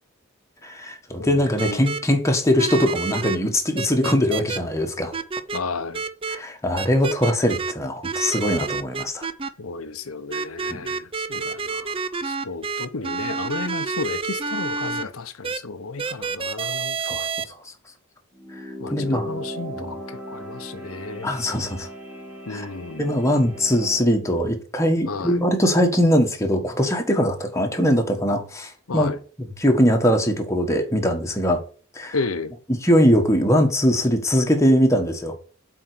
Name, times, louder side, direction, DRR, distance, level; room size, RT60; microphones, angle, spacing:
voice 1, 0.6-5.1 6.3-9.3 10.7-10.9 17.0-17.6 18.9-19.3 19.8-19.9 21.2-21.9 22.5-22.7 23.0-29.1 29.4-31.6 31.9-32.2 32.8-35.3, equal, 15° left, 1.5 m, -21 dB
voice 2, 1.2-1.9 5.5-6.0 9.6-17.0 18.8-21.3 22.5-23.1 25.1-25.4 28.9-29.2 32.1-32.5, left 4 dB, 80° left, 0.8 m, -33 dB
sound 1, 1.6-2.0 2.6-3.4 3.8-4.6 5.1-5.6 5.9-6.4 6.8-7.7 8.0-9.5 10.3-15.0 15.4-15.6 16.0-17.4, right 4 dB, 25° right, 0.5 m, -28 dB
sound 2, 18.3-24.1, equal, 10° right, 1.5 m, -37 dB
7.7 x 4.6 x 6.1 m
head